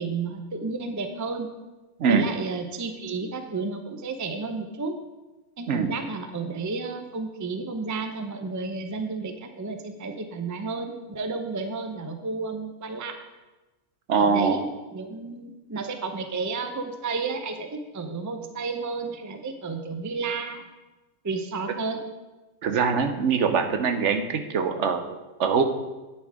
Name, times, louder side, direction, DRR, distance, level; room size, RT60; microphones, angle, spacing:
voice 1, 0.0-1.5 2.1-4.9 5.6-13.2 14.2-14.6 14.9-17.7 17.9-20.6 21.2-22.0, right 4 dB, 20° right, 7 dB, 0.5 m, -32 dB
voice 2, 14.1-14.6 22.6-25.6, right 6 dB, 65° right, 7 dB, 1.0 m, -23 dB
8.9 x 7.0 x 4.9 m, 1.1 s
omnidirectional pair, 1.4 m